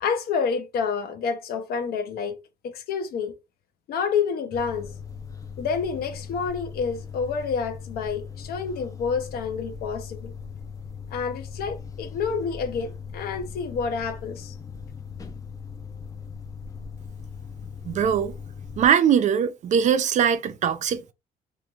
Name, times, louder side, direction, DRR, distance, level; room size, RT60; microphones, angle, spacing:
voice 1, 0.0-2.4 2.6-3.4 3.9-4.9 5.6-10.3 11.1-14.5, left 6 dB, 65° left, 0.7 m, -28 dB
sound 1, 4.5-18.9, left 6 dB, 20° left, 0.5 m, -39 dB
voice 2, 17.9-18.3 18.8-21.1, right 8 dB, 45° right, 0.4 m, -21 dB
3.0 x 2.5 x 2.3 m
cardioid pair, 110°, 17 cm